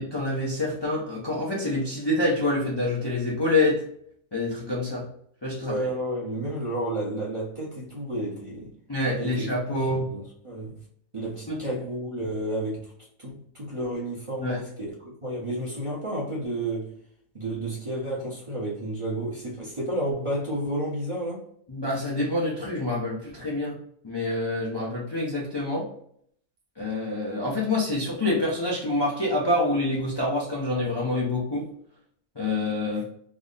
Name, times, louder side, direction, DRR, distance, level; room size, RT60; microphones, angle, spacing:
voice 1, 0.0-3.8 4.3-5.1 5.4-5.8 8.9-10.1 11.5-11.6 14.4-14.6 21.7-23.8 24.0-25.9 26.8-31.7 32.4-33.0, left 2 dB, 40° left, 0.3 m, -26 dB
voice 2, 5.6-8.7 9.2-10.8 11.1-12.9 13.2-17.0 17.3-21.4, right 1 dB, 30° right, 0.7 m, -31 dB
3.5 x 2.1 x 3.8 m
omnidirectional pair, 1.7 m